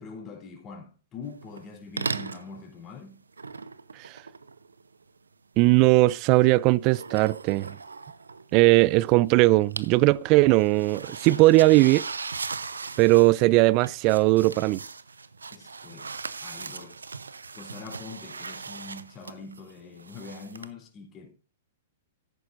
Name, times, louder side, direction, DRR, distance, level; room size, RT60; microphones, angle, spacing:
voice 1, 0.0-3.2 15.5-16.1 16.4-17.0 17.5-21.3, left 4 dB, 25° left, 3.3 m, -43 dB
sound 1, 1.4-1.7 2.0-2.5 3.3-5.0 6.8-9.0 9.3-10.0 10.2-20.7, right 4 dB, 85° right, 0.7 m, -38 dB
voice 2, 5.6-7.7 8.5-12.1 13.0-14.8, right 20 dB, 40° right, 0.4 m, -19 dB
14.0 x 10.5 x 2.6 m
hypercardioid pair, 110°, 0 cm